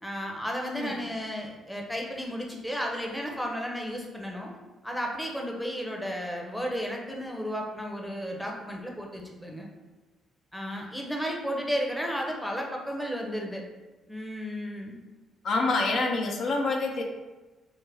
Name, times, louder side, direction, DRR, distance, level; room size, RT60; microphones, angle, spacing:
voice 1, 0.0-4.5 4.8-9.7 10.5-13.6 14.1-14.9, equal, 5° left, 0 dB, 0.7 m, -33 dB
voice 2, 15.4-17.0, left 3 dB, 60° left, 1 dB, 0.5 m, -26 dB
4.7 x 2.1 x 3.3 m, 1.2 s
cardioid pair, 90°, 0 cm